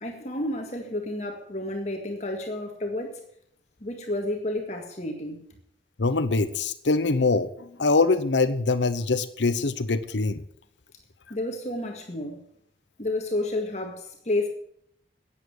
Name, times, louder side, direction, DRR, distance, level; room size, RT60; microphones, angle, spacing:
voice 1, 0.0-3.2 3.8-5.5 11.3-12.4 13.0-14.5, left 1 dB, 40° left, 2 dB, 1.9 m, -30 dB
voice 2, 6.0-10.4, left 3 dB, 85° left, 12 dB, 0.9 m, -24 dB
11.5 x 8.8 x 8.7 m, 0.68 s
head